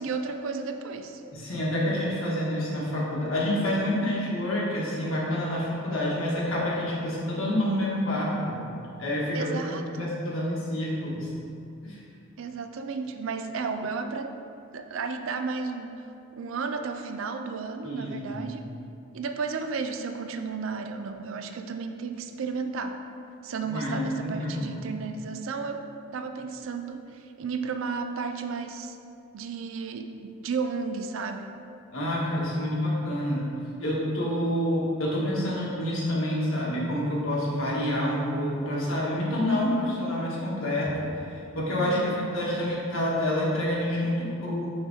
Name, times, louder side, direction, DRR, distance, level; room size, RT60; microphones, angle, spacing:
voice 1, 0.0-1.2 9.3-10.2 12.4-14.4 14.7-16.0 16.3-18.7 19.1-23.0 23.4-25.8 26.1-29.0 29.3-31.6 41.7-42.3, right 4 dB, 70° right, 7 dB, 0.4 m, -33 dB
voice 2, 1.3-8.5 9.0-11.3 11.8-12.0 17.8-18.5 23.7-24.7 31.9-33.4 33.8-40.9 41.2-44.7, left 1 dB, 70° left, -5 dB, 1.5 m, -28 dB
5.0 x 4.4 x 4.5 m, 2.6 s
head